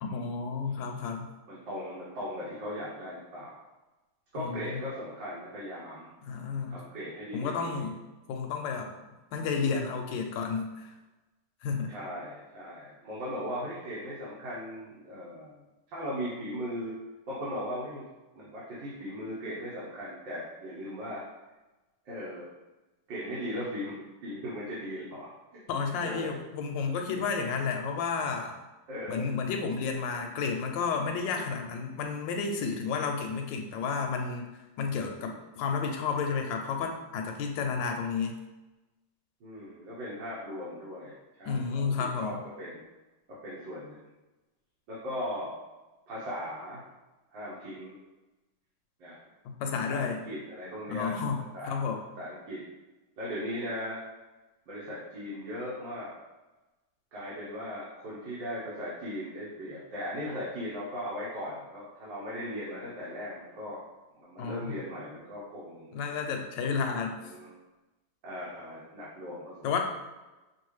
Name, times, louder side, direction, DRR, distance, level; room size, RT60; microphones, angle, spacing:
voice 1, 0.0-1.3 4.4-4.8 6.2-6.8 7.3-8.0 8.3-8.9 9.3-11.0 11.6-11.9 25.7-28.6 29.1-38.3 41.4-42.4 49.4-50.2 50.9-52.1 64.4-64.7 65.9-67.2 69.6-69.8, left 5 dB, 85° left, 3 dB, 1.3 m, -31 dB
voice 2, 1.5-3.6 4.3-6.1 6.7-7.9 11.9-15.6 15.9-17.0 17.3-18.1 18.3-21.2 22.1-22.5 23.1-25.6 26.0-26.3 28.9-29.3 39.4-41.9 42.2-42.8 43.4-44.0 44.9-45.6 46.1-46.8 47.3-48.0 49.0-49.2 49.9-51.2 51.5-52.6 53.2-54.0 54.7-56.1 57.1-63.8 64.2-65.9 67.2-67.5 68.2-69.5, equal, 85° right, -8 dB, 1.7 m, -38 dB
5.4 x 2.5 x 3.2 m, 1.1 s
omnidirectional pair, 2.0 m